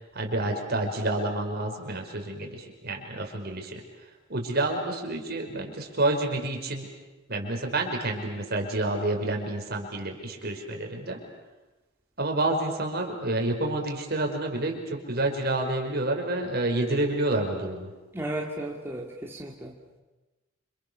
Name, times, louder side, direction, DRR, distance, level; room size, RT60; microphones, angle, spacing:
voice 1, 0.1-3.8 4.3-6.9 7.3-11.2 12.2-17.9, right 2 dB, 50° right, 2 dB, 5.2 m, -29 dB
voice 2, 18.1-19.7, right 1 dB, 10° right, -1 dB, 2.4 m, -34 dB
29.5 x 27.5 x 7.0 m, 1.1 s
head